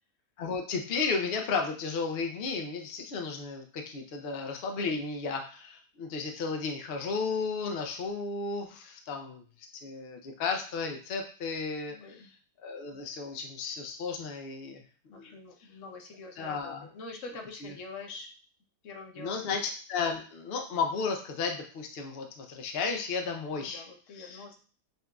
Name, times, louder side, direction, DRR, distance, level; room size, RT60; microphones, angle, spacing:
voice 1, 0.4-9.4 9.8-12.3 12.6-14.8 15.1-15.4 16.4-16.9 17.6-17.7 19.2-23.8 24.2-24.4, left 4 dB, 75° left, 3 dB, 0.5 m, -33 dB
voice 2, 11.9-12.3 15.1-18.3 18.8-19.5 23.5-24.6, left 3 dB, 60° left, 2 dB, 1.0 m, -45 dB
6.6 x 2.5 x 2.2 m, 0.41 s
omnidirectional pair, 1.7 m